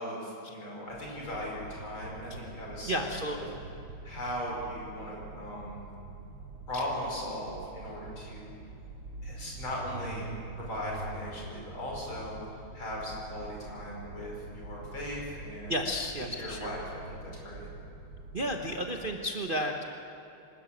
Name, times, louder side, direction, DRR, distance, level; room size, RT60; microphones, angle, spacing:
voice 1, 0.0-3.5 4.0-5.9 6.7-8.5 9.2-10.3 10.6-12.4 12.7-15.8 16.3-17.7, equal, 65° left, -3 dB, 6.3 m, -38 dB
sound 1, 0.9-19.2, right 2 dB, 90° right, 2.9 m, -45 dB
voice 2, 2.9-3.5 6.7-6.8 15.7-16.7 18.3-19.8, equal, 35° right, 2 dB, 1.0 m, -32 dB
25.0 x 13.0 x 9.0 m, 2.9 s
omnidirectional pair, 2.3 m